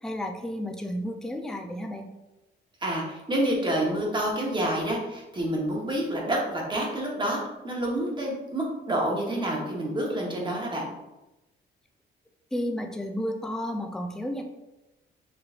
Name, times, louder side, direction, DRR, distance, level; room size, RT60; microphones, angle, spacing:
voice 1, 0.0-2.1 12.5-14.4, equal, 5° left, 3 dB, 0.5 m, -32 dB
voice 2, 2.8-10.9, right 1 dB, 25° right, -2 dB, 1.1 m, -28 dB
4.9 x 3.0 x 2.5 m, 0.99 s
cardioid pair, 90°, 20 cm